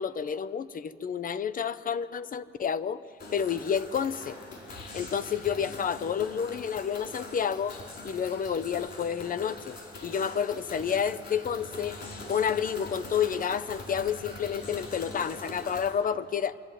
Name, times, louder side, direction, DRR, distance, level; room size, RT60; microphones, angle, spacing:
voice 1, 0.0-3.0 3.3-4.4 4.9-7.7 8.0-12.0 12.3-16.6, left 7 dB, 45° left, 14 dB, 0.7 m, -30 dB
sound 1, 3.2-15.9, left 2 dB, 60° left, 4.5 m, -43 dB
26.0 x 11.0 x 9.2 m, 2.5 s
cardioid pair, 90°, 20 cm